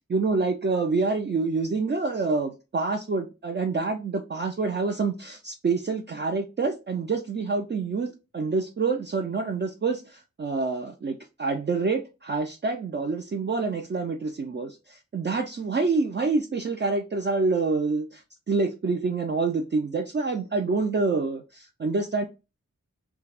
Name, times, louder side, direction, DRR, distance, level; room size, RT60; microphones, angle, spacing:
voice 1, 0.1-22.3, right 4 dB, 40° right, 0.4 m, -27 dB
2.4 x 2.2 x 3.3 m
wide cardioid pair, 75°, 30 cm